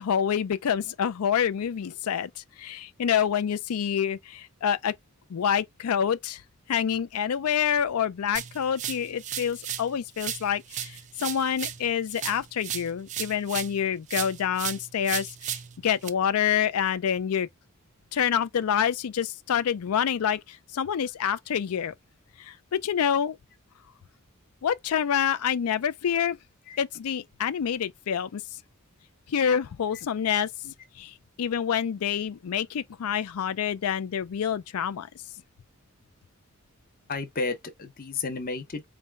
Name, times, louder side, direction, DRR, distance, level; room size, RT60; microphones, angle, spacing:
voice 1, 0.0-4.9 5.3-6.4 6.7-17.5 18.1-21.9 22.4-23.4 24.6-26.4 26.8-28.6 29.3-35.1, left 8 dB, 85° left, 0.4 m, -27 dB
sound 1, 8.3-9.9 10.2-13.8 14.1-16.1, right 10 dB, 35° right, 0.4 m, -35 dB
voice 2, 37.1-38.8, left 3 dB, 40° left, 0.8 m, -32 dB
4.3 x 2.2 x 3.3 m
head